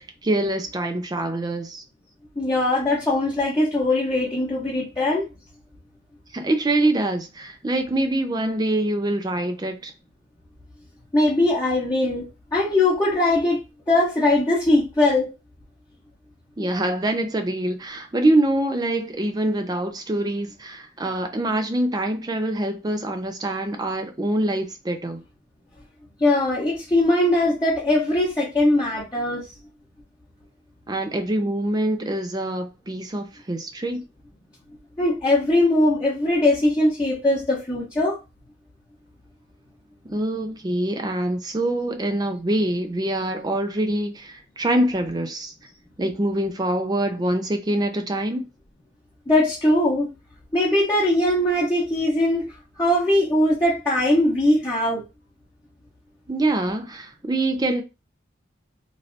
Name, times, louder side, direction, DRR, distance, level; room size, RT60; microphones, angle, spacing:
voice 1, 0.0-1.8 6.3-9.9 16.6-25.2 30.9-34.0 40.1-45.5 46.0-48.4 56.3-57.8, right 1 dB, 20° right, 0.4 m, -25 dB
voice 2, 2.4-5.3 11.1-13.6 13.9-15.3 26.2-29.5 35.0-38.2 49.3-50.1 50.5-52.5 52.8-55.0, left 1 dB, 15° left, 0.8 m, -20 dB
3.2 x 2.6 x 2.6 m
head